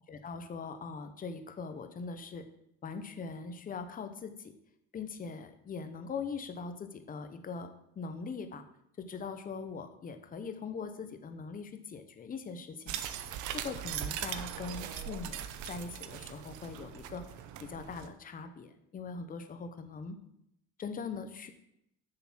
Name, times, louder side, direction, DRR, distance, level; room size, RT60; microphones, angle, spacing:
voice 1, 0.1-2.4 2.8-4.5 4.9-7.7 8.0-8.6 9.0-13.0 13.5-17.2 17.6-20.2 20.8-21.5, left 5 dB, 30° left, 8 dB, 0.8 m, -41 dB
sound 1, 12.9-18.1, right 10 dB, 80° right, 0.8 m, -40 dB
7.0 x 6.8 x 6.0 m, 0.77 s
cardioid pair, 145°, 29 cm